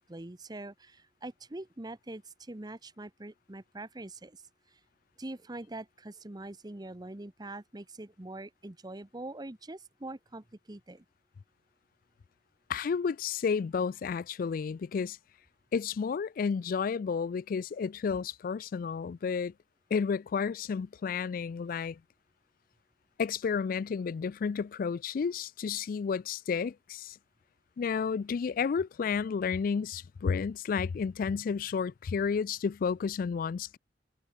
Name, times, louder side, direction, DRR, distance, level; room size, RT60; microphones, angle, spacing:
voice 1, 0.0-4.4 4.7-4.8 5.2-11.0, right 2 dB, 25° right, 1.0 m, -43 dB
voice 2, 12.7-15.2 15.7-19.5 19.9-22.0 23.2-27.2 27.8-33.8, left 6 dB, 50° left, 0.3 m, -31 dB
head